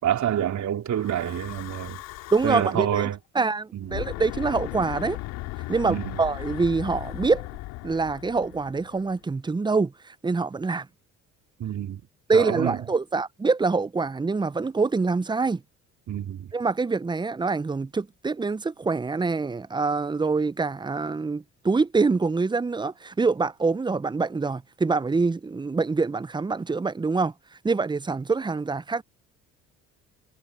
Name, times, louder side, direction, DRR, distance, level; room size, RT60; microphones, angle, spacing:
voice 1, 0.0-2.0 2.4-3.2 3.7-4.1 5.9-6.2 11.6-12.0 12.3-12.8 16.1-16.5, right 10 dB, 50° right, 3.1 m, -27 dB
Breathing / Wind, 0.9-2.9 3.8-9.2, left 19 dB, 75° left, 3.2 m, -37 dB
voice 2, 2.3-3.1 3.3-5.2 5.7-7.5 7.8-10.9 12.3-15.6 16.5-27.3 27.6-29.0, right 4 dB, 15° right, 0.6 m, -25 dB
supercardioid pair, 70°, 36 cm